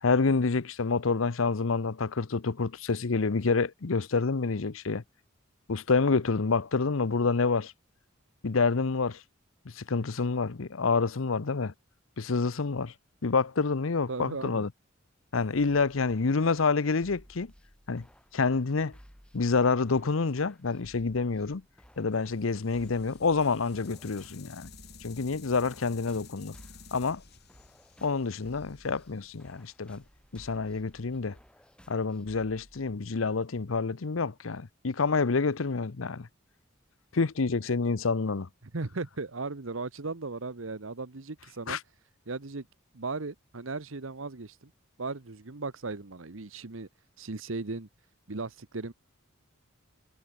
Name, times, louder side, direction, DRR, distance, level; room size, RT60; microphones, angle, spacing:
voice 1, 0.0-5.0 5.7-7.7 8.4-9.2 9.6-11.7 12.2-12.9 13.2-14.7 15.3-17.5 17.9-18.0 18.3-18.9 19.3-21.6 22.0-24.7 25.0-26.5 26.9-27.2 28.0-30.0 30.3-31.4 31.9-36.3 37.1-38.5 41.7-41.8, left 4 dB, 80° left, 0.8 m, -28 dB
voice 2, 14.1-14.7 38.6-41.8 42.3-42.7 42.9-44.7 45.0-46.9 47.2-47.9 48.3-48.9, right 3 dB, 75° right, 1.1 m, -37 dB
sound 1, 15.5-33.3, equal, 5° left, 5.7 m, -57 dB
sound 2, 22.1-30.2, left 5 dB, 55° left, 3.0 m, -53 dB
head